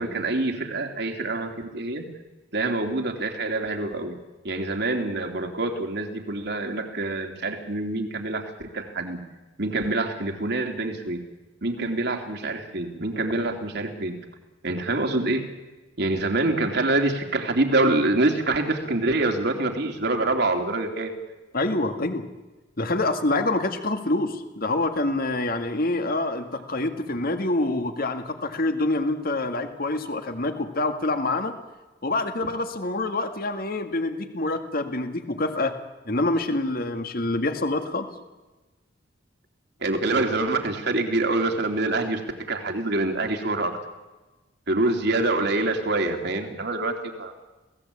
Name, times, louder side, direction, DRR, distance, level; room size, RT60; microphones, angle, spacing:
voice 1, 0.0-2.0 2.5-4.1 4.4-9.2 9.6-11.2 11.6-14.2 14.6-15.4 16.0-21.1 39.8-43.7 44.7-47.3, right 2 dB, 60° right, 4 dB, 3.2 m, -26 dB
voice 2, 21.5-22.3 22.8-31.5 32.0-35.7 36.1-38.1, left 2 dB, 50° left, 7 dB, 2.0 m, -26 dB
28.5 x 18.0 x 8.6 m, 1.2 s
head